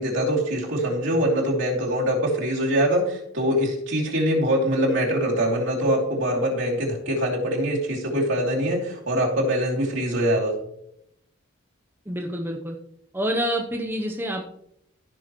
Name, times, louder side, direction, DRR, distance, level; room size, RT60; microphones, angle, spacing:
voice 1, 0.0-10.6, equal, 60° right, -3 dB, 2.8 m, -23 dB
voice 2, 12.1-12.8 13.1-14.4, equal, 10° right, 1 dB, 0.7 m, -27 dB
14.5 x 6.5 x 3.0 m, 0.73 s
head